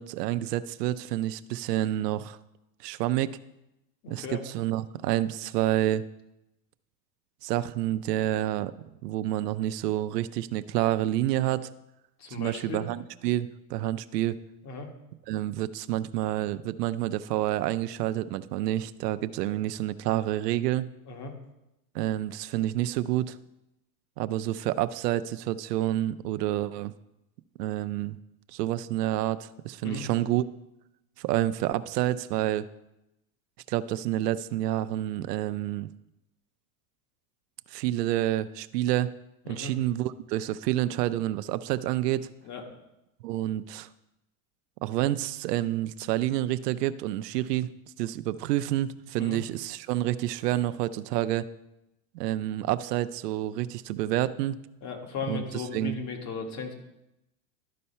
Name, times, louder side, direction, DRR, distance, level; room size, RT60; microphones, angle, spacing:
voice 1, 0.0-2.4 2.8-3.4 4.1-6.0 7.4-8.7 9.0-11.7 12.3-14.4 15.3-20.9 21.9-23.4 24.2-26.9 27.6-28.2 28.5-30.4 31.2-32.7 33.7-35.9 37.7-39.1 39.5-42.3 43.2-43.9 44.8-47.7 48.0-51.5 52.1-54.6 55.3-55.9, right 14 dB, 90° right, 13 dB, 0.6 m, -28 dB
voice 2, 4.0-4.6 12.2-12.9 14.6-14.9 21.1-21.3 29.8-30.1 39.4-39.7 42.4-42.6 49.2-49.4 54.8-56.7, left 4 dB, 35° left, 3 dB, 1.6 m, -36 dB
12.0 x 4.3 x 5.6 m, 0.90 s
supercardioid pair, 140°, 46 cm